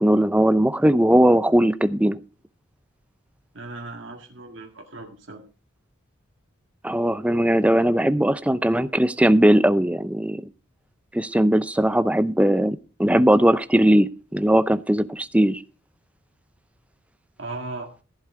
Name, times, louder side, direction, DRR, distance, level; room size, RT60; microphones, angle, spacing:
voice 1, 0.0-2.2 6.8-10.4 11.1-15.6, right 1 dB, 5° right, 14 dB, 0.5 m, -19 dB
voice 2, 3.5-5.4 17.4-17.9, right 2 dB, 60° right, 1 dB, 1.9 m, -37 dB
14.5 x 7.9 x 4.8 m, 0.35 s
head